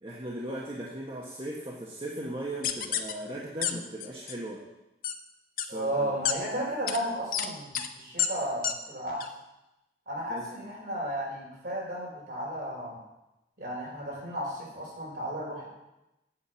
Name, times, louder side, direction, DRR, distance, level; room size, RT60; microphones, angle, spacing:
voice 1, 0.0-4.6 5.7-6.2 10.3-10.5, right 1 dB, 30° right, -4 dB, 1.3 m, -38 dB
sound 1, 2.6-3.1 3.6-3.7 4.0-4.4 5.0-5.1 5.6-5.7 6.3-6.4 6.9-7.0 7.3-7.5 7.7-7.9 8.2-8.3 8.6-8.7 9.2-9.3, left 9 dB, 50° left, 0.8 m, -28 dB
voice 2, 5.7-9.2 10.1-13.0 13.6-15.7, right 1 dB, 55° right, -4 dB, 4.7 m, -34 dB
8.7 x 6.8 x 8.1 m, 0.94 s
head